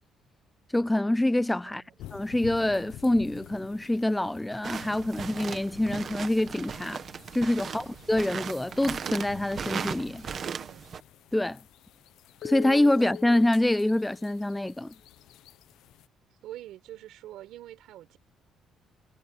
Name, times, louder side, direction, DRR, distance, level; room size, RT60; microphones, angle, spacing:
voice 1, 0.7-1.8 2.1-7.0 7.3-10.3 11.3-11.6 12.4-14.9, left 1 dB, 5° left, 0.3 m, -26 dB
voice 2, 1.6-2.0 7.6-7.9 10.5-10.9 16.4-18.2, right 13 dB, 70° right, 5.4 m, -45 dB
sound 1, 2.0-16.1, left 13 dB, 75° left, 0.9 m, -47 dB
sound 2, 4.6-11.0, right 7 dB, 35° right, 1.4 m, -37 dB
cardioid pair, 175°, 0 cm